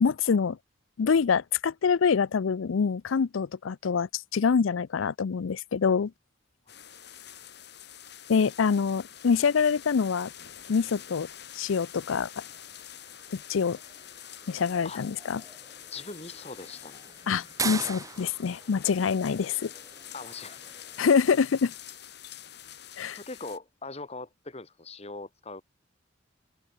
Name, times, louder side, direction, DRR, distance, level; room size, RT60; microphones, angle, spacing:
voice 1, 0.0-0.6 1.0-6.1 8.3-10.3 10.7-11.3 11.5-12.3 13.5-13.8 14.5-15.4 17.3-19.7 21.0-21.7 23.0-23.2, left 6 dB, 85° left, 0.5 m, -25 dB
sound 1, 6.7-23.6, left 10 dB, 55° left, 6.5 m, -47 dB
sound 2, 9.1-21.1, right 5 dB, 15° right, 1.2 m, -43 dB
voice 2, 15.9-17.1 20.1-20.6 23.1-25.6, left 3 dB, 30° left, 2.1 m, -41 dB
head